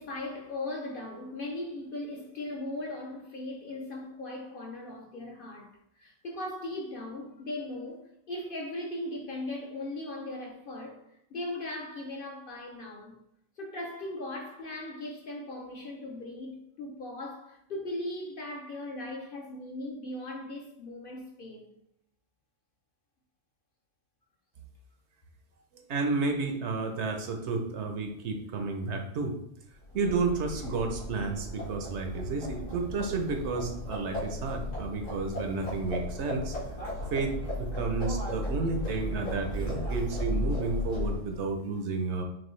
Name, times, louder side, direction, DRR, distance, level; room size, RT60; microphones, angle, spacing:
voice 1, 0.0-5.7 6.0-11.0 11.3-13.2 13.6-21.7, left 1 dB, 50° left, 0.8 m, -38 dB
voice 2, 25.9-29.3 29.9-36.5 37.1-42.2, right 3 dB, 65° right, 0.9 m, -31 dB
Livestock farm animals working animals, 29.8-41.4, left 1 dB, 90° left, 2.0 m, -35 dB
5.9 x 2.3 x 3.1 m
omnidirectional pair, 1.3 m